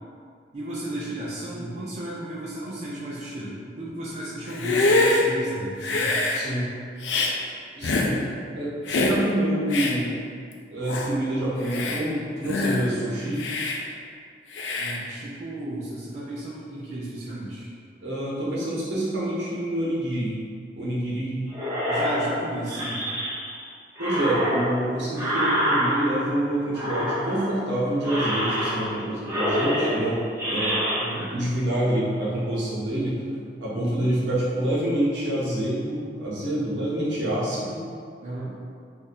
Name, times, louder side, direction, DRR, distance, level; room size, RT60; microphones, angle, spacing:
voice 1, 0.5-6.2 14.8-17.7 21.9-23.0 31.0-31.5 33.8-34.1 38.2-38.6, right 1 dB, 40° right, -8 dB, 0.4 m, -34 dB
Hiss, 4.5-5.2 5.8-6.4 7.0-7.3 7.8-8.1 8.9-9.2 9.7-9.9 10.5-10.6 10.9-11.1 11.6-12.0 12.5-12.9 13.4-13.8 14.5-15.0, left 2 dB, 75° left, 0.4 m, -24 dB
voice 2, 6.3-6.6 7.8-8.1 8.5-10.2 10.7-13.4 18.0-20.4 20.8-21.4 24.0-30.2 30.5-30.8 31.3-33.2 33.6-37.8, right 1 dB, 75° right, -8 dB, 1.0 m, -27 dB
sound 1, 21.5-23.6 24.0-26.4 26.7-27.6 28.0-29.0 29.2-31.0, equal, 15° right, 0.8 m, -26 dB
2.5 x 2.5 x 4.0 m, 2.2 s
head